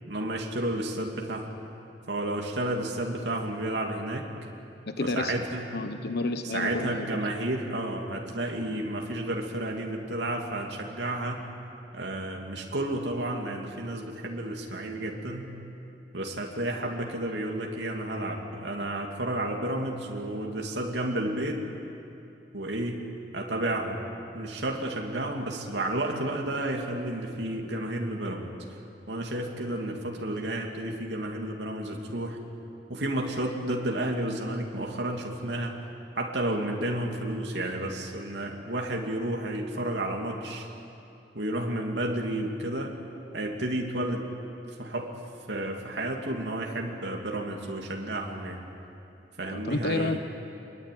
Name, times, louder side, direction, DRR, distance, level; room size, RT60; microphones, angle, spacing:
voice 1, 0.1-1.5 2.1-4.3 5.0-5.7 6.4-11.4 11.9-15.5 16.1-21.6 22.5-23.0 23.3-24.0 24.3-28.5 29.1-32.4 32.9-35.8 36.1-40.7 41.3-42.9 43.3-44.3 44.8-45.1 45.5-48.6 49.4-50.2, right 1 dB, 80° right, 1 dB, 2.8 m, -31 dB
voice 2, 4.9-5.4 5.7-7.1 49.5-50.2, left 2 dB, 60° left, 8 dB, 1.1 m, -30 dB
25.5 x 22.0 x 9.5 m, 2.8 s
head